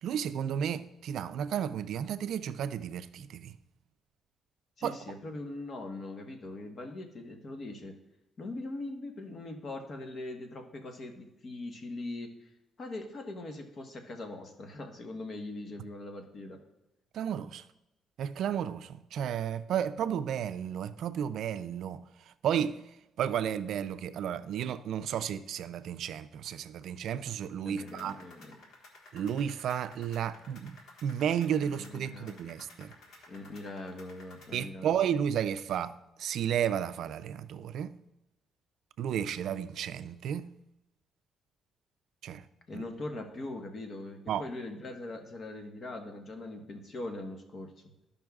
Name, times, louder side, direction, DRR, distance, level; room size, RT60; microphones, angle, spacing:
voice 1, 0.0-3.5 4.8-5.0 17.1-17.6 18.2-22.0 22.4-22.7 23.2-28.1 29.1-32.9 34.5-35.9 36.2-37.9 39.0-40.5 42.2-42.4 42.7-42.8 44.3-44.4, right 9 dB, 75° right, 0.3 m, -32 dB
voice 2, 4.8-7.9 8.4-12.5 12.8-16.6 27.6-28.6 31.6-32.4 33.3-34.9 42.7-47.7, left 2 dB, 50° left, 1.2 m, -41 dB
sound 1, 27.8-34.6, left 2 dB, 80° left, 1.5 m, -55 dB
13.5 x 5.4 x 2.4 m
cardioid pair, 90°, 0 cm